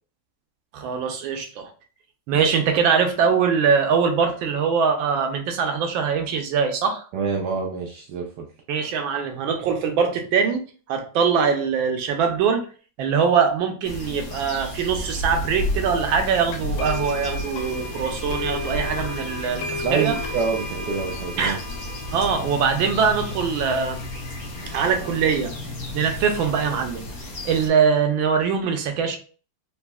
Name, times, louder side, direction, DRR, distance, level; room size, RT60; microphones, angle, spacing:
voice 1, 0.7-1.7 2.3-7.0 8.7-10.6 10.9-12.7 13.0-20.1 21.4-21.6 22.1-24.0 24.7-25.5 25.9-27.0 27.4-29.2, right 6 dB, 90° right, 5 dB, 1.4 m, -22 dB
voice 2, 7.1-8.5 19.8-21.6, right 5 dB, 75° right, 1 dB, 1.0 m, -27 dB
sound 1, 13.8-27.7, left 1 dB, 60° left, 1.2 m, -33 dB
sound 2, 16.5-25.4, left 2 dB, 85° left, 1.4 m, -35 dB
4.0 x 2.6 x 2.3 m, 0.39 s
omnidirectional pair, 2.1 m